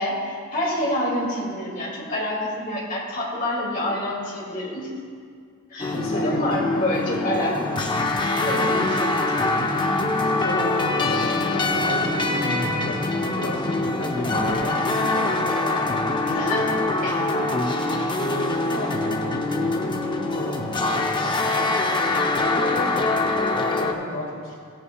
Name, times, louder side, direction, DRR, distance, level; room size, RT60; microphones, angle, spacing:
voice 1, 0.0-4.9 5.7-8.0 8.4-9.6 14.2-14.6 16.3-17.2 22.1-22.2, left 1 dB, 40° left, -5 dB, 2.3 m, -28 dB
voice 2, 5.8-6.4 8.4-8.9 10.2-16.2 16.5-16.8 17.2-17.6 18.1-24.5, left 1 dB, 70° left, -4 dB, 1.7 m, -33 dB
sound 1, 5.8-23.9, left 2 dB, 20° left, 0.5 m, -24 dB
16.0 x 8.8 x 2.3 m, 2.2 s
head